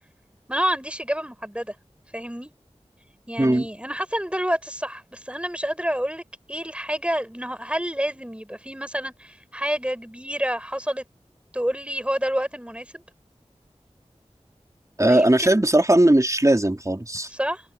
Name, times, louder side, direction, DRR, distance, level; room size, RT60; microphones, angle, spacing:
voice 1, 0.5-1.7 2.1-2.5 3.3-6.2 6.5-11.0 11.5-13.0 15.0-15.7 17.3-17.6, equal, 10° right, 7.1 m, -28 dB
voice 2, 15.0-17.3, right 1 dB, 30° right, 3.9 m, -18 dB
wide cardioid pair, 45°, 12 cm